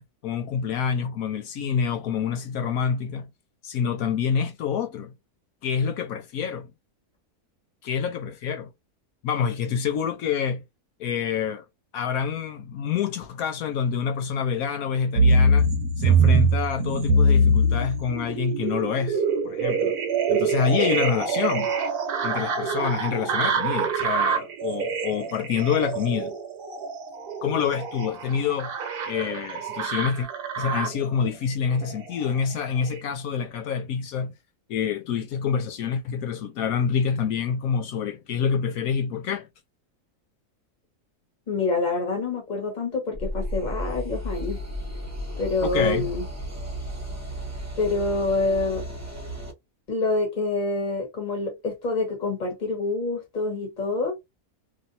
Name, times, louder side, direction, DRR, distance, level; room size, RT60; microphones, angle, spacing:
voice 1, 0.0-3.3 3.6-5.1 5.6-6.7 7.8-8.7 9.2-10.6 11.0-11.6 11.9-15.7 16.0-20.0 20.3-21.7 22.2-26.3 27.4-28.7 29.1-30.3 30.6-34.3 34.7-39.5 45.6-46.1, left 7 dB, 70° left, 1.0 m, -27 dB
sound 1, 15.2-31.1 31.7-32.4 32.9-33.0, right 2 dB, 70° right, 1.3 m, -24 dB
voice 2, 41.5-44.6 45.4-46.2 47.8-48.8 49.9-54.1, left 3 dB, 30° left, 1.5 m, -26 dB
sound 2, 43.1-49.5, equal, 15° right, 0.9 m, -33 dB
3.1 x 2.7 x 2.6 m
omnidirectional pair, 1.7 m